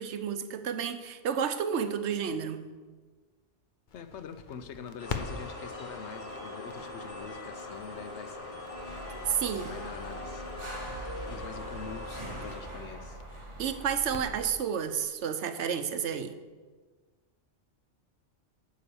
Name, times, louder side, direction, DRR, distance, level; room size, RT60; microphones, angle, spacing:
voice 1, 0.0-2.7 9.3-9.7 13.6-16.3, right 7 dB, 70° right, 9 dB, 1.0 m, -31 dB
voice 2, 3.9-8.5 9.6-10.5 11.3-13.2, left 7 dB, 75° left, 10 dB, 1.0 m, -44 dB
Crackle, 3.9-15.1, left 5 dB, 45° left, 0.9 m, -46 dB
sound 1, 5.0-12.6, left 1 dB, 30° left, 1.3 m, -41 dB
sound 2, 8.8-14.5, right 1 dB, 25° right, 1.9 m, -44 dB
11.5 x 4.9 x 6.9 m, 1.4 s
omnidirectional pair, 1.2 m